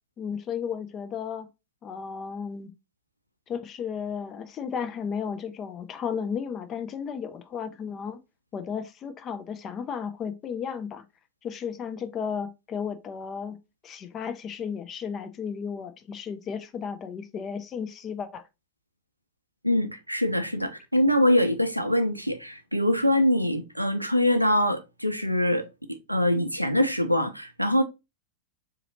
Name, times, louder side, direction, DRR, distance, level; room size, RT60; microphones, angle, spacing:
voice 1, 0.2-1.5 1.8-2.7 3.5-8.2 8.5-11.0 11.4-13.6 13.8-18.4, left 7 dB, 30° left, 0.4 m, -34 dB
voice 2, 19.6-27.8, left 1 dB, 90° right, 0.4 m, -24 dB
3.8 x 2.8 x 2.6 m
figure-of-eight pair, 90°, 0 cm